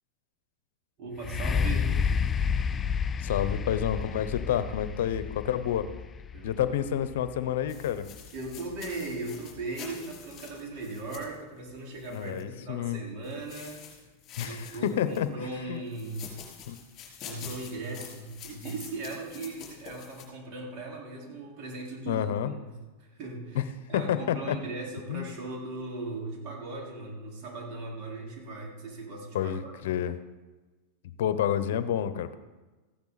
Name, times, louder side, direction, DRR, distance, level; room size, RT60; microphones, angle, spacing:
voice 1, 1.0-2.0 6.3-6.8 8.3-13.8 14.4-16.4 17.2-29.9, right 2 dB, 45° right, -2 dB, 4.1 m, -38 dB
sound 1, 1.2-8.9 9.6-9.7, left 6 dB, 20° left, 0.3 m, -31 dB
voice 2, 3.2-5.9 6.4-8.1 12.1-13.0 14.4-15.3 15.7-15.8 16.7-16.8 22.1-22.5 23.5-23.6 23.9-24.6 25.1-25.4 29.3-30.2 31.2-32.4, left 10 dB, 70° left, 12 dB, 0.8 m, -29 dB
sound 2, 7.7-12.4 13.2-15.3 15.9-20.2, left 7 dB, 35° left, 3.9 m, -47 dB
15.0 x 10.5 x 4.1 m, 1.2 s
hypercardioid pair, 125°, 0 cm